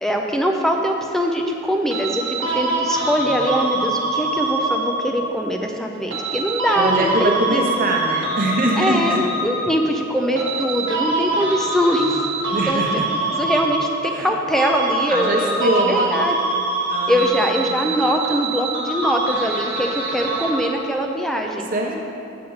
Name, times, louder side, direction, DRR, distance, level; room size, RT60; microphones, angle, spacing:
voice 1, 0.0-7.7 8.8-12.3 12.7-12.8 13.3-16.4 17.1-21.7, equal, ahead, 2 dB, 0.4 m, -22 dB
sound 1, 1.9-5.3 6.1-9.9 10.4-14.3 14.6-20.9, right 2 dB, 65° right, 1.3 m, -24 dB
deepsea creature echolocation hydrogen skyline com, 3.0-16.6, equal, 70° left, 1.6 m, -40 dB
voice 2, 6.8-9.2 12.5-13.1 14.1-14.3 15.1-16.3 16.9-17.9 21.7-22.0, right 1 dB, 45° right, 1 dB, 0.9 m, -23 dB
8.0 x 6.7 x 3.9 m, 2.8 s
head